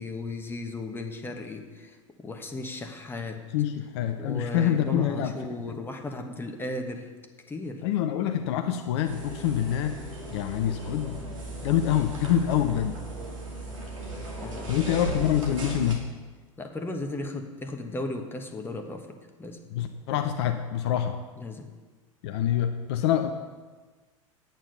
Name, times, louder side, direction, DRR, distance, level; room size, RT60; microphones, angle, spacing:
voice 1, 0.0-3.4 4.1-7.1 7.5-7.8 14.4-14.9 16.6-19.6 21.4-21.6, left 2 dB, 15° left, 4 dB, 1.4 m, -36 dB
voice 2, 3.5-5.3 5.7-5.8 7.8-10.0 10.3-11.2 11.6-13.0 14.7-16.0 19.7-21.2 22.2-23.3, left 10 dB, 55° left, 7 dB, 0.8 m, -26 dB
sound 1, 9.0-15.9, right 2 dB, 75° right, 2.4 m, -37 dB
9.0 x 8.9 x 5.6 m, 1.3 s
figure-of-eight pair, 80°, 17 cm